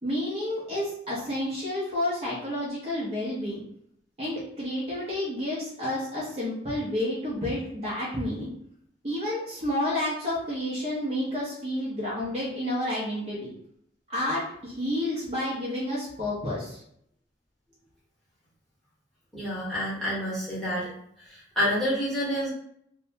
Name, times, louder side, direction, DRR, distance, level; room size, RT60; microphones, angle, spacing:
voice 1, 0.0-3.6 4.2-8.5 9.0-13.5 14.1-16.8, left 1 dB, 30° right, -7 dB, 0.7 m, -30 dB
voice 2, 19.3-20.9 21.2-22.5, equal, ahead, -10 dB, 1.0 m, -28 dB
2.7 x 2.2 x 2.7 m, 0.69 s
head